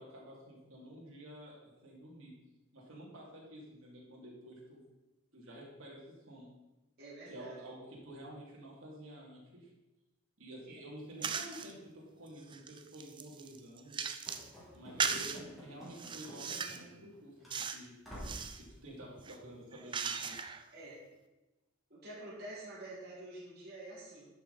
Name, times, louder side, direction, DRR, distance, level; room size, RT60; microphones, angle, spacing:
voice 1, 0.0-2.4 2.7-4.9 5.3-6.0 6.3-6.5 7.3-9.7 10.4-11.8 12.2-14.1 14.7-17.9 18.6-20.4, equal, 70° right, -4 dB, 2.9 m, -50 dB
voice 2, 7.0-7.6 10.7-10.8 20.7-21.0 21.9-24.3, right 2 dB, 45° right, -6 dB, 3.8 m, -47 dB
sound 1, 11.2-11.7 12.3-14.5 15.0-15.4 15.9-16.9 17.5-17.9 18.1-18.6 19.2-20.7, right 6 dB, 20° right, 0.4 m, -38 dB
Run / Slam, 14.3-17.1 17.4-17.6 18.0-18.5, equal, ahead, 2.9 m, -50 dB
11.5 x 6.3 x 4.2 m, 1.1 s
head